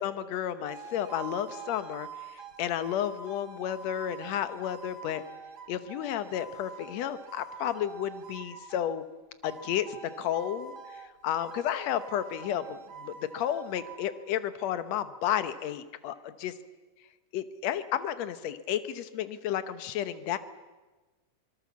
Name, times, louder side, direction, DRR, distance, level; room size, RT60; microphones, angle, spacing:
voice 1, 0.0-5.2 5.7-9.0 9.4-16.5 17.3-20.4, left 10 dB, 65° left, 12 dB, 1.9 m, -32 dB
sound 1, 0.6-8.9 9.4-11.1 11.4-14.0, right 5 dB, 35° right, 2.0 m, -46 dB
25.0 x 19.5 x 7.3 m, 1.2 s
omnidirectional pair, 3.8 m